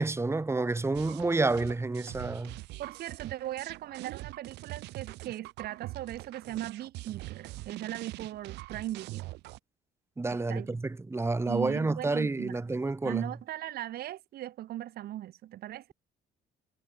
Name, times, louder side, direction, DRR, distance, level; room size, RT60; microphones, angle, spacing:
voice 1, 0.0-2.5 10.2-13.3, right 3 dB, 15° right, 3.0 m, -29 dB
sound 1, 1.0-9.6, right 19 dB, 85° right, 6.6 m, -43 dB
voice 2, 2.8-9.3 10.3-10.7 11.5-12.6 13.0-15.9, right 13 dB, 65° right, 2.3 m, -38 dB
cardioid pair, 110°, 17 cm